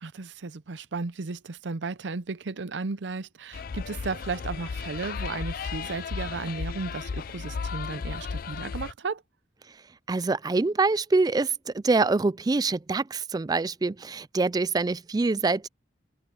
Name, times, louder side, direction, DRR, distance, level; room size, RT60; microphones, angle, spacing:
voice 1, 0.0-9.2, right 4 dB, 75° right, 0.6 m, -34 dB
sound 1, 3.5-8.9, left 5 dB, 50° left, 0.4 m, -34 dB
voice 2, 10.1-15.7, right 3 dB, 20° right, 0.3 m, -25 dB
head